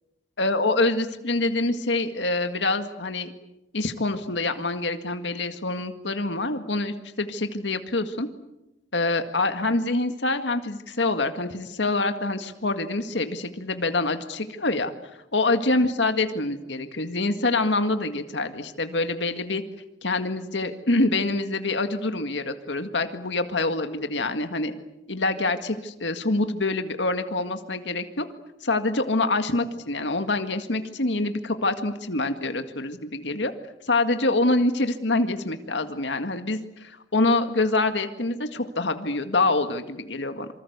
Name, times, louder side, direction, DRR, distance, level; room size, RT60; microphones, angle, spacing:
voice 1, 0.4-3.3 3.7-8.3 8.9-14.9 15.3-19.6 20.0-24.7 25.1-28.3 28.6-33.5 33.9-40.5, left 2 dB, 80° left, 8 dB, 1.9 m, -25 dB
27.0 x 25.5 x 8.2 m, 0.92 s
head